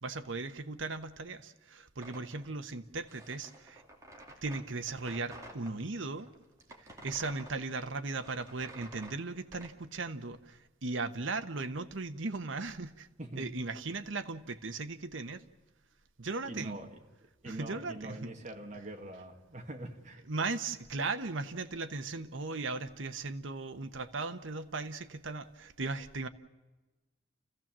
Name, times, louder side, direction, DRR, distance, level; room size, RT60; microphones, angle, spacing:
voice 1, 0.0-3.8 4.4-6.3 6.8-13.1 13.4-15.4 16.2-16.8 17.4-18.3 20.3-26.3, right 3 dB, 70° right, 1.1 m, -37 dB
sound 1, 2.0-5.7 6.2-9.7, right 1 dB, 15° right, 2.7 m, -51 dB
voice 2, 13.2-13.5 16.4-20.2, right 1 dB, 35° right, 2.1 m, -44 dB
29.5 x 15.5 x 7.4 m
head